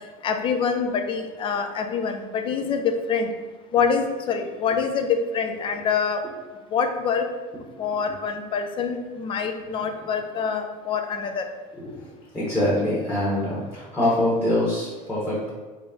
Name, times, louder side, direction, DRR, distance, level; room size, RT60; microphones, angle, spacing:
voice 1, 0.2-3.3 3.7-6.2 6.7-7.3 7.8-11.4, left 6 dB, 25° left, 6 dB, 0.4 m, -25 dB
voice 2, 11.8-12.1 12.3-15.5, left 1 dB, 10° left, -9 dB, 1.1 m, -24 dB
4.0 x 3.3 x 3.6 m, 1.3 s
cardioid pair, 150°, 19 cm